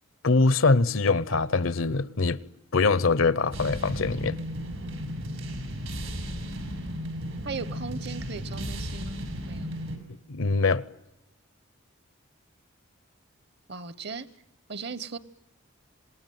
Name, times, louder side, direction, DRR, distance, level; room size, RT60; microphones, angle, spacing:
voice 1, 0.2-2.4 2.7-4.4 10.3-10.8, left 3 dB, 75° left, 0.9 m, -23 dB
sound 1, 3.5-10.0, equal, 85° right, 5.6 m, -35 dB
voice 2, 7.4-9.2 9.5-9.7 13.7-14.3 14.7-15.2, right 4 dB, 55° right, 1.0 m, -37 dB
27.0 x 19.5 x 9.4 m
head